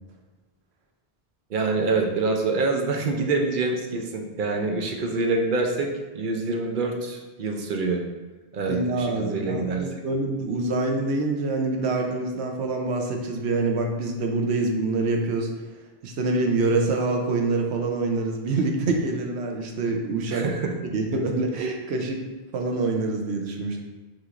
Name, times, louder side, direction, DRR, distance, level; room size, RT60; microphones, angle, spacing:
voice 1, 1.5-5.9 6.1-8.0 8.5-9.9 20.3-20.6, right 3 dB, 55° right, 3 dB, 0.7 m, -26 dB
voice 2, 8.7-15.5 16.0-20.4 20.9-22.2 22.5-23.8, right 3 dB, 90° right, 2 dB, 0.9 m, -25 dB
6.1 x 3.0 x 2.5 m, 1.2 s
omnidirectional pair, 1.1 m